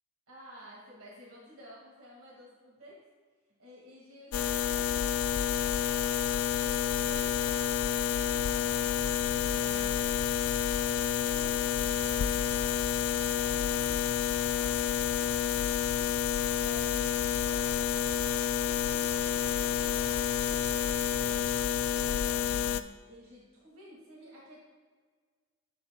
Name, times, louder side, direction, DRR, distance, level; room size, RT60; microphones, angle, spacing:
voice 1, 0.3-3.0 3.6-5.6 22.0-24.6, equal, 85° right, -4 dB, 2.0 m, -53 dB
sound 1, 4.3-22.8, left 9 dB, 80° left, 0.4 m, -29 dB
sound 2, 8.3-22.3, right 1 dB, 35° right, 0.7 m, -53 dB
11.5 x 7.7 x 2.3 m, 1.5 s
head